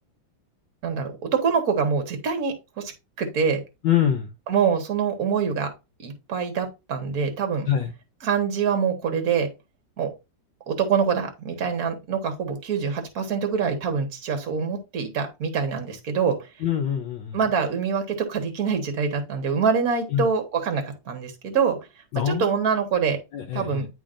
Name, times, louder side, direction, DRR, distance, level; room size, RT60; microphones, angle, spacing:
voice 1, 0.8-2.5 3.2-3.6 4.5-5.7 6.0-7.7 8.2-9.5 10.0-10.1 10.7-16.4 17.3-21.8 22.3-23.2 23.5-23.9, right 6 dB, 50° right, 1.7 m, -25 dB
voice 2, 3.8-4.3 7.7-7.9 16.6-17.4 20.1-20.3 22.1-22.6 23.3-23.8, left 9 dB, 75° left, 1.4 m, -24 dB
10.0 x 3.7 x 2.5 m
omnidirectional pair, 2.1 m